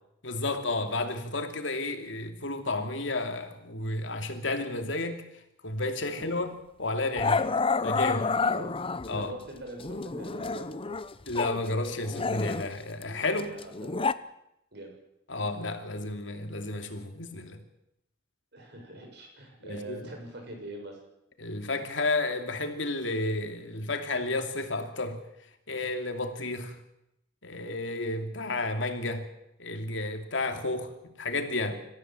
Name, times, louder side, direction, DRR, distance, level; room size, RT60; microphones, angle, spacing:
voice 1, 0.2-5.2 5.6-6.5 6.8-7.5 7.8-8.3 9.1-9.3 11.3-13.6 15.3-17.6 19.6-20.1 21.4-25.2 25.7-26.8 27.4-29.3 29.6-31.8, left 2 dB, 80° left, 2.6 m, -32 dB
Growling, 6.2-6.4 7.2-9.3 9.8-11.6 11.8-14.1, left 4 dB, 30° left, 0.7 m, -29 dB
voice 2, 8.4-8.8 9.1-11.0 13.4-14.1 14.7-14.9 18.5-21.0 31.7-31.8, right 1 dB, 60° right, 7.3 m, -43 dB
27.0 x 14.5 x 7.7 m
head